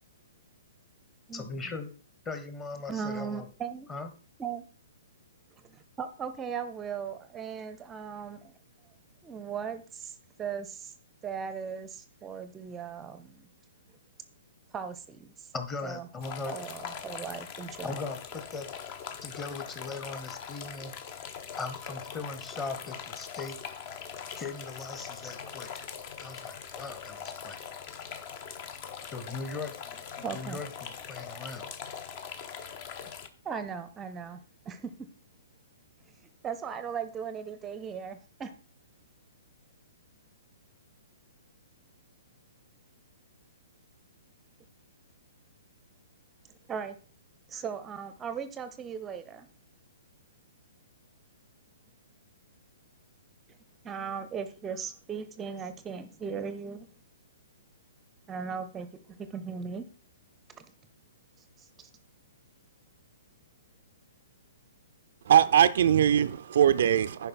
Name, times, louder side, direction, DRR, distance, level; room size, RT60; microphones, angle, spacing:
voice 1, 1.3-1.9 2.2-3.5 3.9-4.1 15.5-16.6 17.8-18.7 19.2-20.9 21.6-23.6 24.3-25.9 26.2-27.6 29.1-29.8 30.2-31.7, left 3 dB, 20° left, 1.1 m, -39 dB
voice 2, 2.9-3.9 4.4-4.6 5.6-8.5 9.2-10.9 11.2-13.5 14.7-15.5 15.8-16.1 16.5-18.0 30.2-30.6 33.4-34.4 34.6-34.9 36.4-38.5 46.5-47.0 47.5-49.5 53.8-56.9 58.3-59.9 60.5-60.7 61.6-61.9, right 6 dB, 15° right, 0.6 m, -38 dB
sound 1, 16.2-33.3, left 7 dB, 40° left, 0.8 m, -42 dB
voice 3, 65.3-67.3, right 9 dB, 55° right, 0.4 m, -21 dB
10.5 x 5.1 x 4.3 m
figure-of-eight pair, 120°, 0 cm